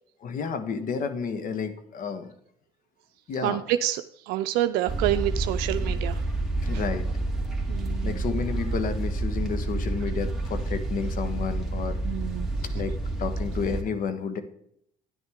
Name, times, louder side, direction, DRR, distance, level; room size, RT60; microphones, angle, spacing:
voice 1, 0.2-2.3 3.3-3.6 6.6-7.1 8.0-12.0 12.7-14.4, left 5 dB, 60° left, 9 dB, 1.3 m, -31 dB
voice 2, 3.4-6.2 7.7-8.2 12.1-12.5, right 13 dB, 80° right, 9 dB, 0.4 m, -28 dB
sound 1, 4.9-13.8, right 2 dB, ahead, 2.5 m, -29 dB
10.0 x 9.7 x 3.6 m, 0.70 s
supercardioid pair, 70°, 16 cm